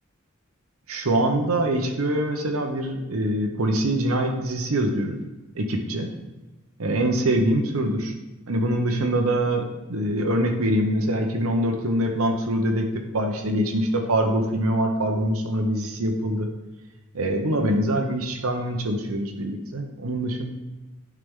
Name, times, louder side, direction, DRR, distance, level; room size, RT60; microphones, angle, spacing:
voice 1, 0.9-5.2 5.5-6.1 6.8-8.1 8.5-12.9 13.1-16.5 17.1-20.4, right 1 dB, 85° right, 3 dB, 1.0 m, -24 dB
11.0 x 4.8 x 3.7 m, 1.1 s
head